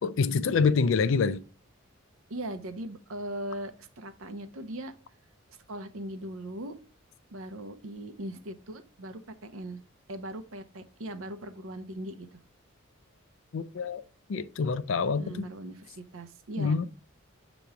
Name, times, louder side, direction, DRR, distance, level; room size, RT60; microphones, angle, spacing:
voice 1, 0.0-1.4 13.5-14.0 14.3-15.5 16.6-16.9, left 5 dB, 65° left, 0.4 m, -26 dB
voice 2, 2.3-4.9 5.7-6.8 7.3-9.8 10.1-12.4 15.2-16.8, right 1 dB, 75° right, 0.7 m, -39 dB
6.8 x 3.0 x 4.9 m
head